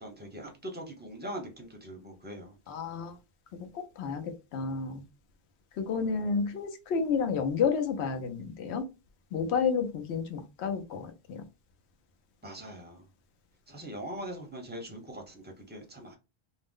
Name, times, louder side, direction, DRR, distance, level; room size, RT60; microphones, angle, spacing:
voice 1, 0.0-2.6 12.4-13.1 13.7-16.2, right 1 dB, 15° right, 0.5 m, -42 dB
voice 2, 2.7-3.2 3.5-5.0 5.8-8.8 9.3-11.4, left 5 dB, 80° left, 0.9 m, -31 dB
2.5 x 2.0 x 3.5 m
omnidirectional pair, 1.1 m